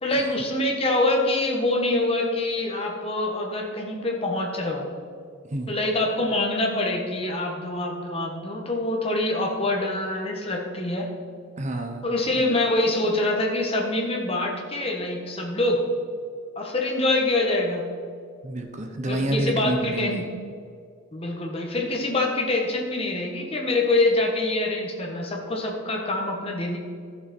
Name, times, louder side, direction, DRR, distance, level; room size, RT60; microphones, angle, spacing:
voice 1, 0.0-4.9 5.7-11.1 12.0-15.8 16.5-17.8 19.1-20.2 21.1-26.8, left 2 dB, 30° left, 0 dB, 1.6 m, -25 dB
voice 2, 11.6-12.1 18.4-20.2, right 1 dB, 35° right, 5 dB, 0.8 m, -28 dB
13.5 x 7.1 x 4.4 m, 2.2 s
head